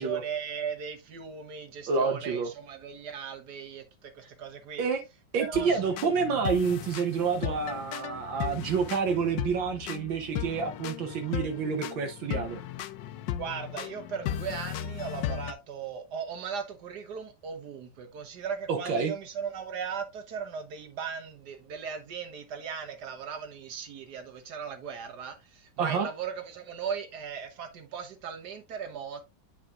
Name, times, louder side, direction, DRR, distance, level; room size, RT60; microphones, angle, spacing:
voice 1, 0.0-4.9 5.4-6.0 13.4-29.2, right 6 dB, 60° right, 1.6 m, -38 dB
voice 2, 1.9-2.5 4.8-5.0 5.3-12.6 18.7-19.1 25.8-26.1, right 5 dB, 80° right, 1.8 m, -28 dB
sound 1, 5.5-15.5, left 11 dB, 75° left, 1.2 m, -36 dB
8.6 x 5.0 x 2.4 m
omnidirectional pair, 2.1 m